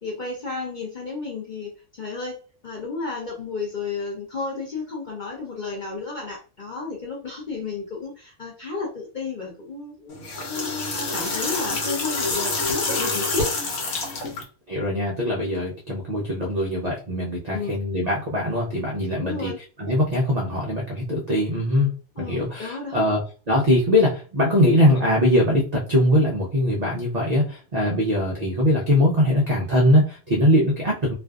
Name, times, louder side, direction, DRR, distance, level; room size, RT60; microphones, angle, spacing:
voice 1, 0.0-13.5 17.5-17.8 19.2-19.6 22.2-23.1, left 4 dB, 55° left, -2 dB, 0.5 m, -32 dB
sound 1, 10.1-14.4, left 3 dB, 85° left, 1.2 m, -27 dB
voice 2, 14.7-19.5 19.8-21.9 22.2-31.1, left 1 dB, 60° right, -2 dB, 0.4 m, -21 dB
2.5 x 2.4 x 2.3 m, 0.37 s
omnidirectional pair, 1.5 m